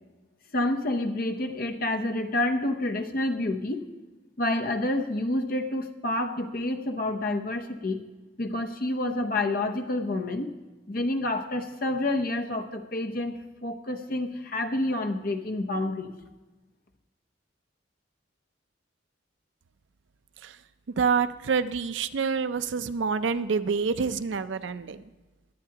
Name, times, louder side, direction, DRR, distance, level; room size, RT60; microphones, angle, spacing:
voice 1, 0.5-3.9 4.4-8.0 8.4-10.5 10.9-13.3 13.6-16.1, left 1 dB, 50° left, 5 dB, 0.8 m, -28 dB
voice 2, 21.0-25.0, right 5 dB, 70° right, 13 dB, 0.5 m, -27 dB
17.0 x 10.5 x 2.9 m, 1.2 s
head